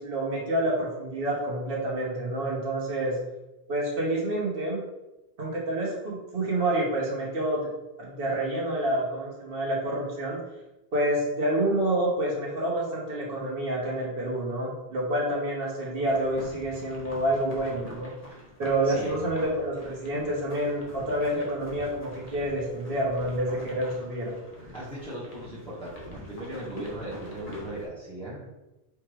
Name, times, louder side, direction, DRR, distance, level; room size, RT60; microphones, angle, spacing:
voice 1, 0.0-3.2 3.7-4.8 5.4-7.7 8.0-10.4 10.9-18.1 18.6-24.7, right 1 dB, 65° right, -3 dB, 1.3 m, -28 dB
sound 1, 16.0-27.9, left 1 dB, 40° left, 1.2 m, -46 dB
voice 2, 18.8-19.2 24.7-28.5, right 1 dB, 5° left, -9 dB, 1.3 m, -38 dB
4.7 x 3.2 x 3.1 m, 0.99 s
omnidirectional pair, 1.0 m